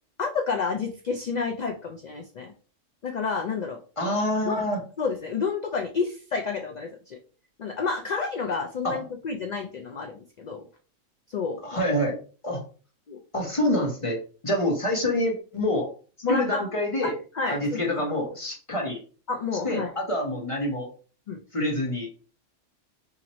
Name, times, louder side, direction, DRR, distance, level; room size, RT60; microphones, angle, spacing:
voice 1, 0.2-2.5 3.0-3.8 4.5-4.6 5.0-7.2 7.6-10.7 11.3-11.6 13.1-13.2 16.2-16.7 17.0-17.8 19.3-19.9 21.3-21.4, left 5 dB, 85° left, 3 dB, 0.3 m, -30 dB
voice 2, 4.0-4.8 8.8-9.0 11.6-12.2 12.4-12.6 13.3-14.2 14.4-15.9 16.3-17.1 17.5-19.0 19.6-20.9 21.5-22.1, left 1 dB, 30° left, 1 dB, 0.7 m, -26 dB
2.9 x 2.6 x 4.0 m, 0.38 s
omnidirectional pair, 1.3 m